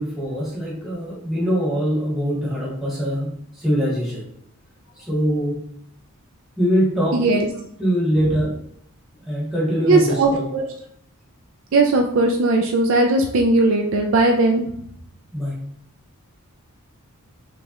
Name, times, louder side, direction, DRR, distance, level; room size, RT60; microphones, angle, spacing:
voice 1, 0.0-3.3 3.6-4.3 5.0-5.6 6.6-7.2 7.8-8.5 9.3-10.5 15.3-15.6, equal, ahead, -6 dB, 1.2 m, -22 dB
voice 2, 7.1-7.5 9.9-10.6 11.7-14.6, right 2 dB, 60° right, 2 dB, 0.4 m, -18 dB
3.4 x 3.1 x 2.9 m, 0.69 s
head